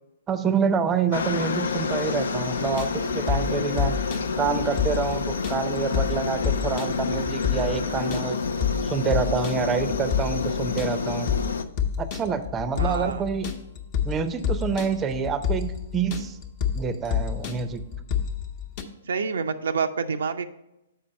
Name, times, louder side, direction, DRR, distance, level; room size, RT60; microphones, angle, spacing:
voice 1, 0.3-3.9 4.4-8.4 8.8-11.3 12.0-13.5 14.1-16.4 16.7-17.8, right 6 dB, 20° right, 11 dB, 0.5 m, -27 dB
Aircraft, 1.1-11.6, left 4 dB, 70° left, 0.5 m, -28 dB
sound 1, 2.6-18.8, left 8 dB, 40° left, 0.9 m, -29 dB
voice 2, 12.7-13.2 19.1-20.5, right 5 dB, 65° right, 8 dB, 0.4 m, -27 dB
7.2 x 5.0 x 5.1 m, 0.91 s
figure-of-eight pair, 115°, 0 cm